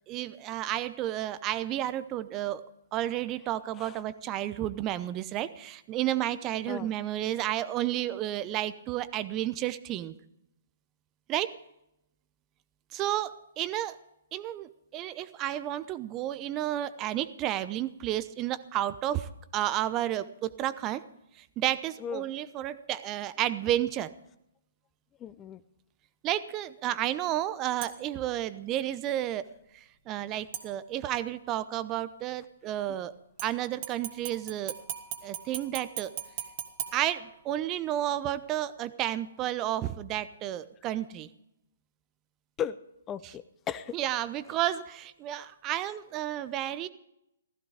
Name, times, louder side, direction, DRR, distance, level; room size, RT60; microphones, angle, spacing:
voice 1, 0.1-2.6 2.9-10.1 11.3-11.5 12.9-14.0 14.3-21.0 21.4-24.1 26.2-29.4 30.1-33.1 33.4-34.7 35.2-36.1 36.9-41.3 43.2-43.3 43.9-46.9, right 13 dB, 25° right, 15 dB, 0.8 m, -31 dB
voice 2, 25.2-25.6 42.6-42.8 43.1-44.0, left 9 dB, 20° left, 15 dB, 0.6 m, -36 dB
sound 1, 27.8-28.2 30.5-31.2 33.4-37.8 38.2-38.3, right 10 dB, 40° right, 2.2 m, -40 dB
15.5 x 15.0 x 5.0 m, 0.84 s
figure-of-eight pair, 125°, 0 cm